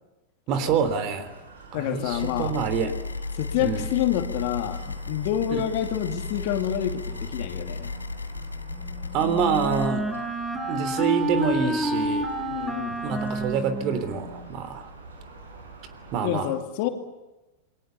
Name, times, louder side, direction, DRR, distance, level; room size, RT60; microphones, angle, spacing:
voice 1, 0.5-1.3 1.7-2.9 3.6-3.9 9.1-10.0 10.7-12.3 13.0-14.9 16.1-16.5, right 6 dB, 45° right, 11 dB, 3.3 m, -26 dB
sound 1, 0.6-16.2, right 3 dB, 80° right, 6.2 m, -47 dB
voice 2, 1.7-2.6 3.4-7.9 12.5-13.0 16.2-16.9, left 11 dB, 55° left, 6 dB, 2.6 m, -28 dB
sound 2, 2.1-9.9, left 3 dB, 90° left, 1.2 m, -34 dB
Wind instrument woodwind instrument, 8.7-14.5, right 1 dB, 10° right, 7.0 m, -29 dB
28.5 x 21.5 x 7.0 m, 1.0 s
hypercardioid pair, 95°, 0 cm